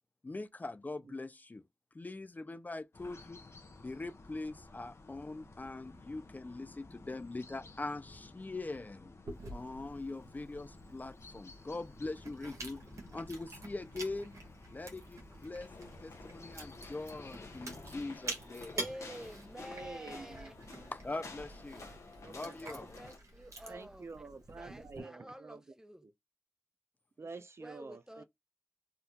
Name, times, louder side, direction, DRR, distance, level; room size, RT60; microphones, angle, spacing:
voice 1, 0.2-1.6 1.9-3.4 3.8-9.1 9.5-12.8 13.1-14.3 14.7-18.8 20.9-21.9 22.2-22.9, left 2 dB, 35° left, 0.4 m, -42 dB
sound 1, 2.9-18.2, left 2 dB, 60° left, 0.7 m, -55 dB
Chewing mastication, 9.3-25.0, right 2 dB, 80° right, 1.1 m, -48 dB
sound 2, 15.6-23.2, left 3 dB, 90° left, 0.9 m, -51 dB
voice 2, 18.7-20.5 22.6-24.1 24.6-26.0 27.6-28.2, equal, 10° right, 0.6 m, -49 dB
voice 3, 19.6-20.9 22.2-22.9 23.7-25.7 26.0-26.1 27.2-28.2, right 4 dB, 60° right, 0.5 m, -49 dB
3.5 x 2.3 x 2.8 m
cardioid pair, 55°, 5 cm